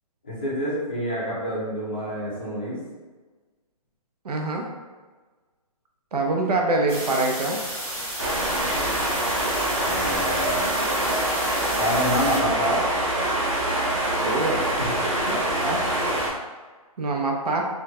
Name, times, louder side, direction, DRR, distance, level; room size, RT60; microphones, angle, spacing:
voice 1, 0.2-2.8 9.8-10.8 11.8-12.8, equal, 15° left, -8 dB, 0.4 m, -27 dB
voice 2, 4.2-4.6 6.1-7.6 14.2-15.8 17.0-17.6, right 2 dB, 90° right, 1 dB, 0.7 m, -25 dB
sound 1, 6.9-12.4, equal, 20° right, 1.0 m, -32 dB
sound 2, 8.2-16.3, right 1 dB, 50° right, 1.0 m, -25 dB
4.5 x 2.2 x 2.2 m, 1.3 s
hypercardioid pair, 175°, 19 cm